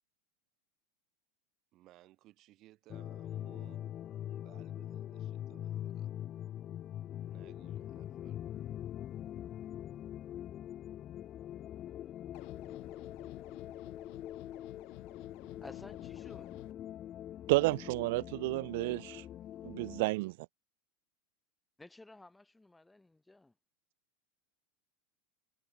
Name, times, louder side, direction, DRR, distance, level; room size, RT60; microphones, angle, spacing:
voice 1, 1.7-6.1 7.3-8.5, right 16 dB, 45° right, 5.9 m, -62 dB
sound 1, 2.9-20.1, left 11 dB, 40° left, 1.7 m, -43 dB
sound 2, 12.3-16.7, left 40 dB or more, 60° left, 0.9 m, -52 dB
voice 2, 15.6-16.5 21.8-23.5, left 2 dB, 5° left, 2.8 m, -54 dB
voice 3, 17.5-19.3 19.6-20.4, right 22 dB, 70° right, 0.5 m, -31 dB
supercardioid pair, 115°, 0 cm